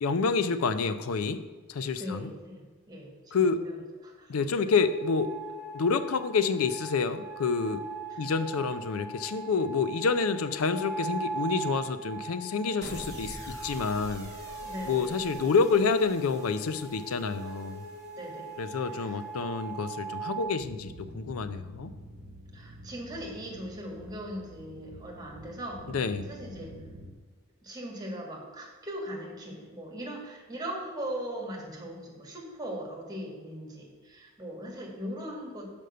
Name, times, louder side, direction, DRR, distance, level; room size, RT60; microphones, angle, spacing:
voice 1, 0.0-2.3 3.3-3.7 4.3-5.4 5.7-7.9 8.2-14.3 14.9-17.9 18.6-21.9 25.9-26.3, left 4 dB, 90° left, 12 dB, 0.5 m, -28 dB
voice 2, 2.0-4.7 8.1-8.3 14.6-15.1 18.1-18.5 18.9-19.2 22.5-26.7 27.6-35.7, equal, 20° right, -1 dB, 1.7 m, -40 dB
sound 1, 4.7-20.4, right 3 dB, 55° left, 0.9 m, -40 dB
sound 2, 12.8-19.2, equal, 15° left, 1.4 m, -47 dB
sound 3, 20.6-27.1, right 1 dB, 70° right, 0.9 m, -48 dB
6.4 x 5.2 x 6.6 m, 1.4 s
head